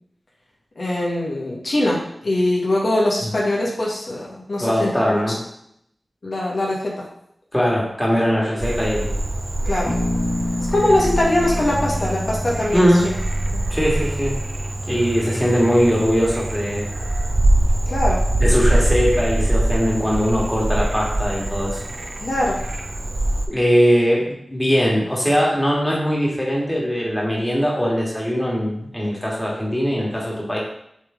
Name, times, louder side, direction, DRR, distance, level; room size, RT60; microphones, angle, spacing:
voice 1, 0.8-5.2 6.2-6.9 9.7-10.0 10.7-13.1 13.5-13.6 17.9-18.2 22.2-22.6, left 1 dB, 65° left, -4 dB, 1.8 m, -22 dB
voice 2, 4.6-5.4 7.5-9.1 12.7-13.1 13.7-14.3 14.9-16.9 18.4-21.8 23.5-30.6, equal, 5° left, -4 dB, 1.9 m, -20 dB
Frog, 8.6-23.5, right 1 dB, 50° right, 0.7 m, -23 dB
Bass guitar, 9.9-13.8, left 1 dB, 40° left, 1.2 m, -28 dB
7.6 x 3.6 x 3.8 m, 0.73 s
wide cardioid pair, 75°, 0 cm